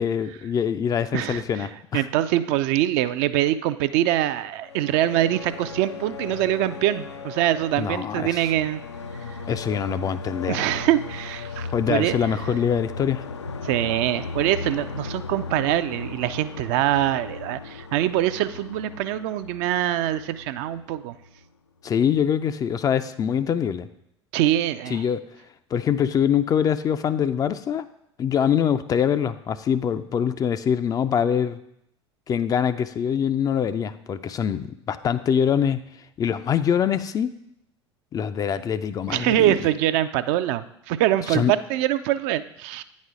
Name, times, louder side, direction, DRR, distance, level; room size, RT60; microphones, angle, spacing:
voice 1, 0.0-2.1 7.8-8.5 9.5-10.7 11.7-13.3 21.8-23.9 24.9-25.2 25.7-27.9 28.2-31.6 32.3-35.8 36.2-37.3 38.1-39.5 41.3-41.5, left 8 dB, 25° left, 12 dB, 0.4 m, -24 dB
voice 2, 1.1-1.7 1.9-8.8 10.5-12.3 13.6-21.1 24.3-25.0 39.1-42.8, right 13 dB, 50° right, 12 dB, 0.4 m, -24 dB
sound 1, 4.6-21.5, left 4 dB, 80° left, 0.5 m, -37 dB
9.3 x 4.2 x 4.9 m, 0.78 s
figure-of-eight pair, 75°, 15 cm